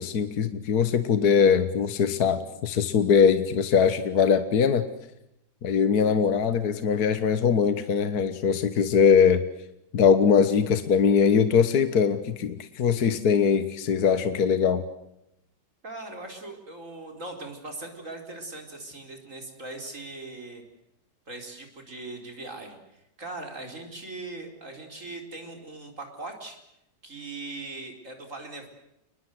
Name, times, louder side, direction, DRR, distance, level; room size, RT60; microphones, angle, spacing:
voice 1, 0.0-4.9 5.6-9.4 9.9-14.8, left 6 dB, 65° left, 11 dB, 1.8 m, -21 dB
voice 2, 15.8-20.6 21.3-26.6 27.0-28.7, right 2 dB, 45° right, 4 dB, 4.7 m, -40 dB
29.0 x 21.0 x 8.0 m, 0.83 s
omnidirectional pair, 1.8 m